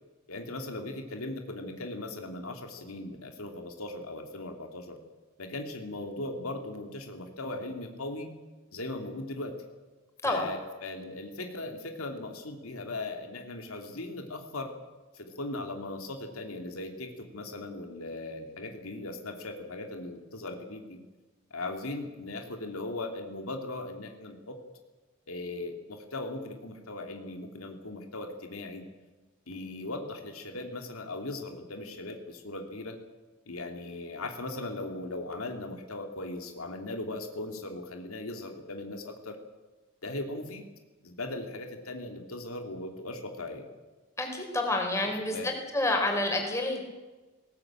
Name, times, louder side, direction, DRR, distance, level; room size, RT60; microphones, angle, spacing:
voice 1, 0.3-5.0 5.4-8.3 8.7-9.5 10.2-14.7 15.1-21.0 21.5-24.6 25.3-28.8 29.5-33.0 33.5-39.4 40.0-40.6 41.0-43.7 45.0-45.5 45.9-46.0, left 2 dB, 90° left, 4 dB, 2.8 m, -38 dB
voice 2, 44.2-45.4 45.7-46.8, left 2 dB, 15° left, 2 dB, 4.3 m, -28 dB
20.0 x 18.5 x 8.9 m, 1.2 s
head